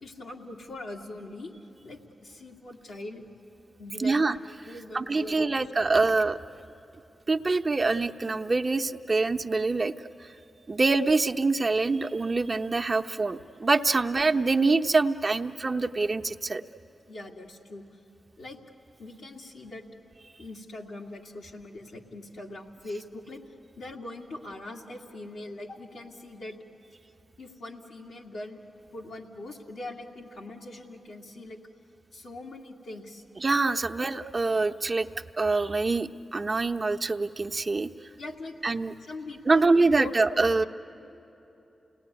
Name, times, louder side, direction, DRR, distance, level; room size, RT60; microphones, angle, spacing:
voice 1, 0.0-1.5 1.8-3.3 3.8-4.1 4.6-5.6 5.9-6.0 17.1-17.9 18.4-18.6 19.0-19.8 20.4-23.4 23.8-26.6 27.4-28.6 28.9-31.6 32.1-33.2 38.2-40.7, left 2 dB, 80° left, -2 dB, 2.2 m, -41 dB
voice 2, 4.0-4.4 4.9-6.4 7.3-9.9 10.7-16.6 33.4-35.1 35.4-37.9 38.6-38.9 39.5-40.6, right 3 dB, 45° right, 7 dB, 0.8 m, -25 dB
29.0 x 18.5 x 9.7 m, 3.0 s
supercardioid pair, 40°, 0 cm